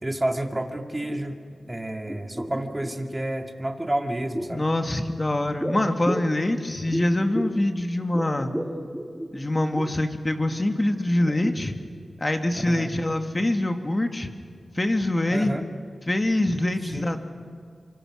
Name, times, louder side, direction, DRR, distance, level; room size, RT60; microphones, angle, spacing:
voice 1, 0.0-1.4 1.7-4.6 12.6-12.9 15.3-15.7 16.9-17.1, right 1 dB, 20° right, 4 dB, 2.4 m, -30 dB
sound 1, 0.5-0.6 0.9-1.7 2.0-3.2 4.0-4.7 5.6-7.7 8.0-10.0 10.5-10.6 11.0-12.1 12.3-12.4, equal, 5° right, 2.4 m, -34 dB
voice 2, 4.5-8.5 9.3-11.8 12.2-14.3 14.8-15.5 16.1-17.2, left 1 dB, 30° left, 6 dB, 2.2 m, -24 dB
27.5 x 25.0 x 6.5 m, 2.2 s
cardioid pair, 45°, 0 cm